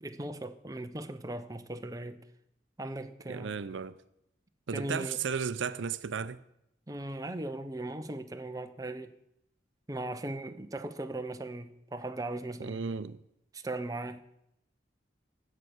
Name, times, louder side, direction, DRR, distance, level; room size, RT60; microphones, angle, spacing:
voice 1, 0.0-2.2 2.8-3.6 4.7-5.2 6.9-9.1 9.9-13.0 13.5-14.2, right 1 dB, 20° right, 0.6 m, -38 dB
voice 2, 3.3-4.0 4.7-6.4 12.6-13.2, right 6 dB, 80° right, 0.5 m, -34 dB
16.0 x 6.7 x 6.2 m
head